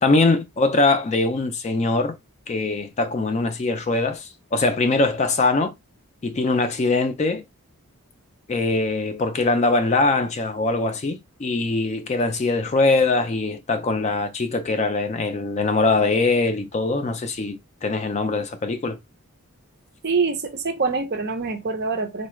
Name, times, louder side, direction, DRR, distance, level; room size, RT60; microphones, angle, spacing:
voice 1, 0.0-2.2 2.5-5.7 6.2-7.4 8.5-19.0, left 3 dB, 30° left, 0.3 m, -22 dB
voice 2, 20.0-22.3, right 4 dB, 45° right, 0.6 m, -25 dB
4.0 x 2.2 x 3.0 m
head